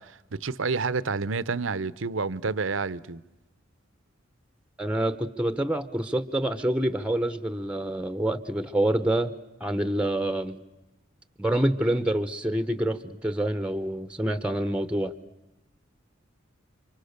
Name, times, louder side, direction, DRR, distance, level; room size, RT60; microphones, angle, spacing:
voice 1, 0.0-3.2, right 4 dB, 70° right, 0.8 m, -29 dB
voice 2, 4.8-9.3 9.6-10.6 11.4-15.1, right 1 dB, 5° right, 0.9 m, -27 dB
29.0 x 25.5 x 6.7 m
head